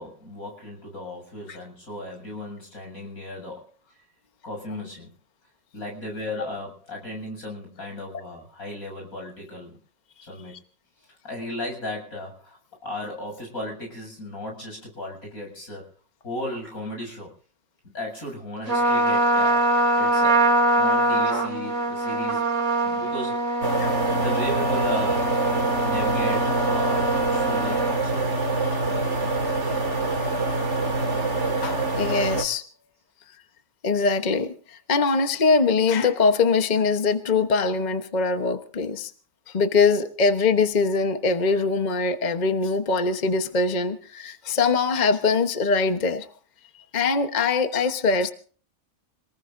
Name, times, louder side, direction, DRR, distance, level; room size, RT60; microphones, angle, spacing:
voice 1, 0.0-3.7 4.4-5.1 5.7-9.8 10.2-10.6 11.2-15.9 16.2-17.3 17.9-20.5 20.8-22.5 22.8-23.6 24.2-25.4 25.8-28.4, left 1 dB, 90° left, 8.2 m, -36 dB
Trumpet, 18.7-28.0, right 1 dB, 75° right, 3.0 m, -23 dB
sound 1, 23.6-32.4, right 3 dB, 55° right, 2.3 m, -25 dB
voice 2, 31.6-32.6 33.8-39.1 39.5-46.3 46.9-48.3, left 4 dB, 35° left, 1.1 m, -22 dB
27.0 x 19.5 x 2.6 m
omnidirectional pair, 1.5 m